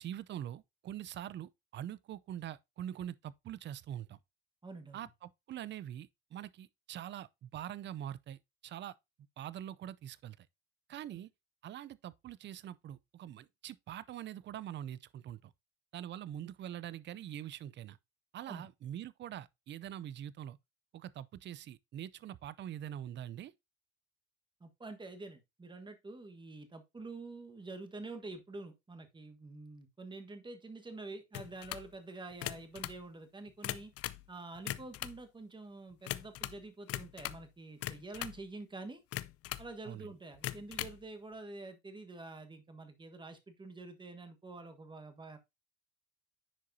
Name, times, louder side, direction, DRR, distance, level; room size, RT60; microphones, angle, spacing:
voice 1, 0.0-4.2 4.9-8.9 9.4-10.5 10.9-11.3 11.6-15.5 15.9-18.0 18.3-20.6 20.9-23.5 39.9-40.1, right 11 dB, 35° right, 0.5 m, -44 dB
voice 2, 4.6-5.1 11.1-11.2 18.5-18.7 24.6-33.9 34.3-39.0 39.6-45.4, right 3 dB, 15° right, 1.4 m, -47 dB
sound 1, 31.3-31.9 32.3-33.0 33.5-34.3 34.6-35.2 36.0-36.6 36.9-37.5 37.8-38.4 39.1-39.7 40.3-41.0, left 14 dB, 45° left, 0.5 m, -40 dB
10.0 x 4.7 x 2.7 m
supercardioid pair, 100°, 33 cm